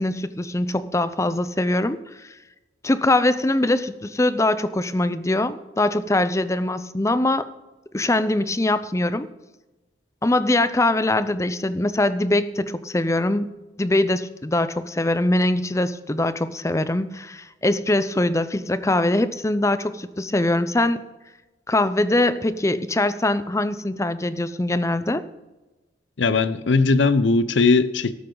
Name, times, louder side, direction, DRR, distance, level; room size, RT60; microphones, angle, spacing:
voice 1, 0.0-2.3 2.8-7.5 7.9-9.3 10.2-13.5 13.8-21.0 21.7-25.2, left 1 dB, 15° left, 0.6 m, -22 dB
voice 2, 26.2-28.1, left 3 dB, 85° left, 0.7 m, -19 dB
13.5 x 13.0 x 3.9 m
head